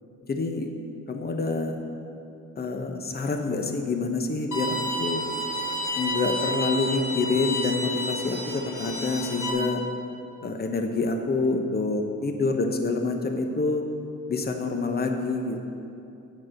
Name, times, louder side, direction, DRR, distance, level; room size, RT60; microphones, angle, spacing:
voice 1, 0.3-0.7 1.1-1.8 2.6-5.2 6.0-9.8 10.4-13.8 14.3-15.6, left 3 dB, 30° left, 4 dB, 0.9 m, -27 dB
Bowed string instrument, 4.5-9.5, left 1 dB, 80° left, 1.6 m, -30 dB
8.6 x 6.3 x 6.4 m, 2.7 s
cardioid pair, 90°, 30 cm